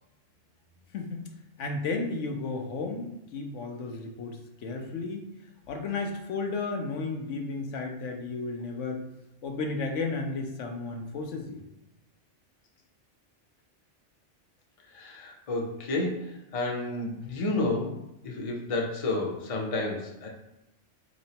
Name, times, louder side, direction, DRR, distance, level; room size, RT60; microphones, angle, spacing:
voice 1, 1.6-5.3 5.7-9.0 9.4-11.6, left 3 dB, 85° left, 3 dB, 1.0 m, -33 dB
voice 2, 14.9-20.3, left 2 dB, 40° left, 0 dB, 0.6 m, -31 dB
4.2 x 3.0 x 2.8 m, 0.88 s
omnidirectional pair, 1.2 m